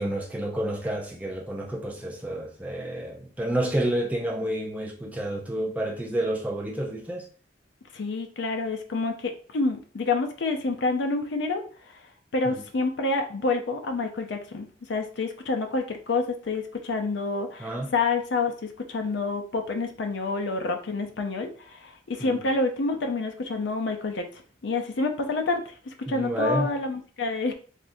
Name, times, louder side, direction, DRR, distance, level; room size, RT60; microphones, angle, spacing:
voice 1, 0.0-7.3 12.4-12.6 17.6-17.9 22.2-22.4 26.1-26.7, right 1 dB, 10° right, 0.5 m, -29 dB
voice 2, 7.9-12.0 12.3-18.5 18.9-24.2 24.6-25.7 26.1-27.5, left 3 dB, 75° left, 0.5 m, -28 dB
3.5 x 2.6 x 2.6 m
head